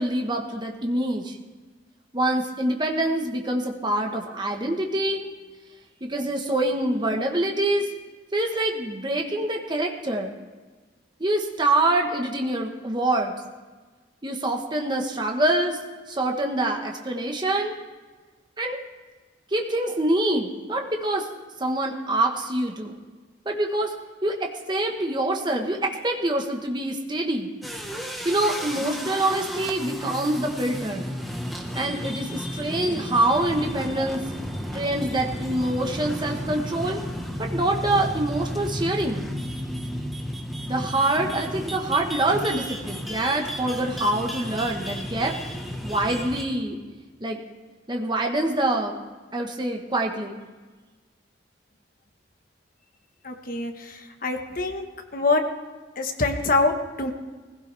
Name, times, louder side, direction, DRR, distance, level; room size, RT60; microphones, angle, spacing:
voice 1, 0.0-1.4 2.1-5.3 6.0-7.8 8.3-10.3 11.2-13.3 14.2-15.8 16.1-17.8 18.6-18.8 19.5-21.3 21.6-23.0 23.4-23.9 24.2-27.5 28.2-31.0 31.7-34.2 34.7-37.0 37.4-39.2 40.7-45.4 45.8-46.8 47.2-47.4 47.9-48.9 49.3-50.4, right 1 dB, 25° right, 2 dB, 1.3 m, -25 dB
sound 1, 27.6-46.6, equal, ahead, 1.3 m, -33 dB
voice 2, 53.2-54.9 55.1-55.4 56.0-57.1, left 3 dB, 50° left, 4 dB, 1.4 m, -25 dB
20.5 x 16.0 x 3.4 m, 1.3 s
head